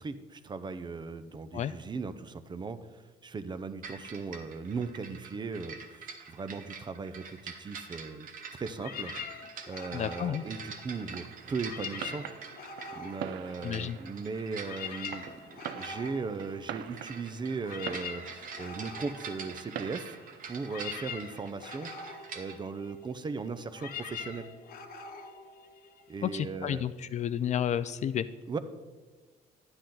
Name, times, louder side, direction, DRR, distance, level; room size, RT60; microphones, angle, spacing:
voice 1, 0.0-9.1 9.7-12.2 12.9-20.2 20.5-21.9 22.3-24.5 26.1-26.8 28.5-28.6, right 4 dB, 25° right, 11 dB, 0.6 m, -38 dB
sound 1, 3.8-22.6, right 5 dB, 55° right, 1.1 m, -46 dB
sound 2, 8.7-11.2 11.5-14.1 14.4-26.3, left 6 dB, 60° left, 1.0 m, -44 dB
voice 2, 9.9-10.4 13.6-14.0 26.2-28.3, left 9 dB, 45° left, 14 dB, 0.4 m, -31 dB
Fireworks, 10.9-21.0, right 10 dB, 70° right, 0.6 m, -45 dB
10.5 x 9.8 x 3.9 m, 1.3 s
cardioid pair, 110°, 17 cm